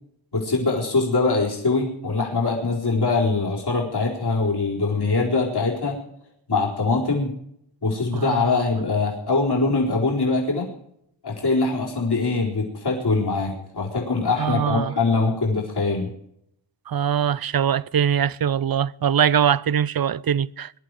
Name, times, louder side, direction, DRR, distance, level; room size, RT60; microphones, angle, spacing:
voice 1, 0.3-6.0 6.5-7.3 7.8-10.7 11.2-16.1, left 3 dB, 55° left, 4.3 m, -23 dB
voice 2, 8.1-8.6 14.4-14.9 16.9-20.7, right 8 dB, 50° right, 0.5 m, -22 dB
22.0 x 12.0 x 4.9 m
wide cardioid pair, 100°, 47 cm